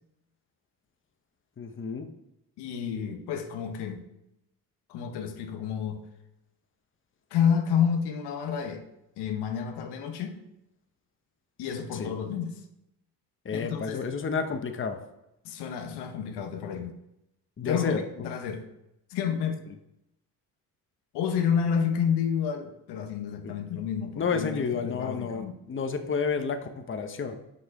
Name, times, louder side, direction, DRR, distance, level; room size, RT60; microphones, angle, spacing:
voice 1, 1.6-2.1 12.0-12.1 13.4-15.0 17.6-18.0 24.2-27.4, left 5 dB, 30° left, 7 dB, 0.9 m, -30 dB
voice 2, 2.6-4.0 4.9-6.0 7.3-8.8 9.2-10.4 11.6-12.6 13.5-14.0 15.4-17.0 17.6-18.6 19.1-19.6 21.1-25.5, left 7 dB, 90° left, 5 dB, 1.0 m, -29 dB
6.6 x 5.5 x 4.7 m, 0.85 s
cardioid pair, 80°, 39 cm